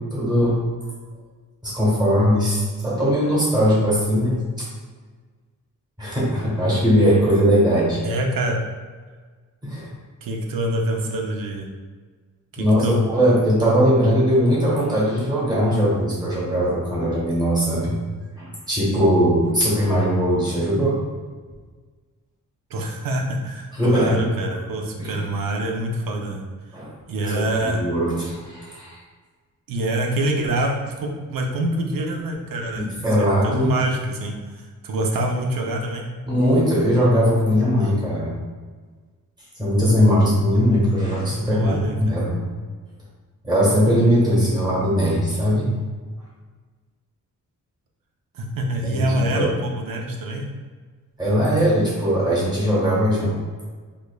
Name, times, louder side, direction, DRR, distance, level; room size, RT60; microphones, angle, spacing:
voice 1, 0.1-0.6 1.6-4.6 6.0-8.0 9.6-9.9 12.6-18.0 18.4-21.0 23.7-24.2 25.0-25.2 26.7-26.9 27.3-29.0 32.8-33.7 36.3-38.4 39.6-42.4 43.4-45.7 48.8-49.5 51.2-53.3, equal, 15° right, -7 dB, 1.2 m, -20 dB
voice 2, 8.0-8.6 10.2-11.7 12.5-13.0 22.7-26.5 27.1-27.8 29.7-36.1 41.5-42.2 48.3-50.5, right 1 dB, 85° right, 1 dB, 0.6 m, -26 dB
5.0 x 2.4 x 2.2 m, 1.5 s
wide cardioid pair, 155°, 33 cm